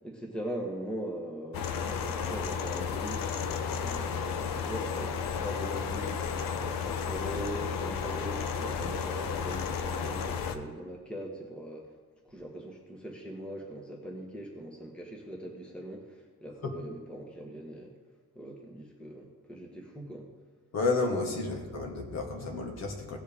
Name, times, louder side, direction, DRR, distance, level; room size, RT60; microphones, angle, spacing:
voice 1, 0.0-11.9 12.3-17.9 18.3-20.3, right 1 dB, 5° left, -1 dB, 1.2 m, -41 dB
sound 1, 1.5-10.6, left 6 dB, 80° left, 0.9 m, -33 dB
voice 2, 20.7-23.2, left 3 dB, 50° left, 1 dB, 1.7 m, -31 dB
17.0 x 7.4 x 3.6 m, 1.4 s
cardioid pair, 175°, 33 cm